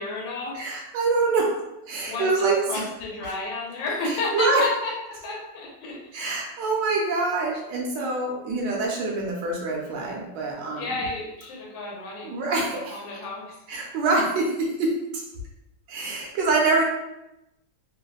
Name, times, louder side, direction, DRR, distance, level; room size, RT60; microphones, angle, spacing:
voice 1, 0.0-0.6 2.0-6.2 10.8-12.3 12.9-13.5, left 3 dB, 85° left, -3 dB, 1.4 m, -32 dB
voice 2, 0.5-1.5 1.9-2.8 4.0-4.6 6.1-11.0 12.2-13.0 13.7-15.2 15.9-16.8, right 3 dB, 75° right, -1 dB, 1.2 m, -25 dB
3.3 x 2.1 x 2.3 m, 0.92 s
omnidirectional pair, 2.0 m